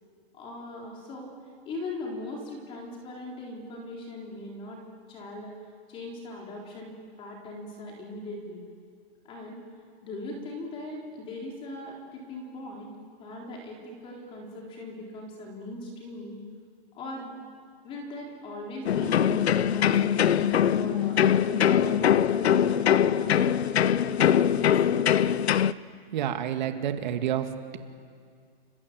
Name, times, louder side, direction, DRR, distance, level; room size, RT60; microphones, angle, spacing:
voice 1, 0.3-1.3 1.6-4.8 5.1-5.5 5.9-6.9 7.2-8.6 9.2-9.6 10.0-12.9 13.2-16.4 16.9-17.4 17.8-20.3 20.8-22.0 22.3-25.0, left 2 dB, 15° left, -1 dB, 4.0 m, -40 dB
sound 1, 18.9-25.7, left 9 dB, 90° left, 0.9 m, -22 dB
voice 2, 26.1-27.5, right 10 dB, 45° right, 7 dB, 2.2 m, -28 dB
29.5 x 25.5 x 7.7 m, 2.2 s
hypercardioid pair, 170°, 31 cm